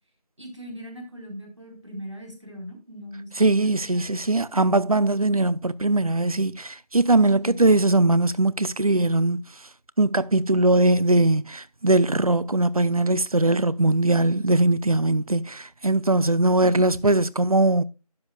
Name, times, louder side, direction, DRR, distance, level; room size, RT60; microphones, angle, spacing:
voice 1, 0.4-4.2 7.3-7.6 16.8-17.1, equal, 45° right, 4.0 m, -40 dB
voice 2, 3.4-9.4 10.0-17.8, right 2 dB, 65° right, 0.8 m, -21 dB
12.5 x 9.5 x 2.3 m
figure-of-eight pair, 180°, 20 cm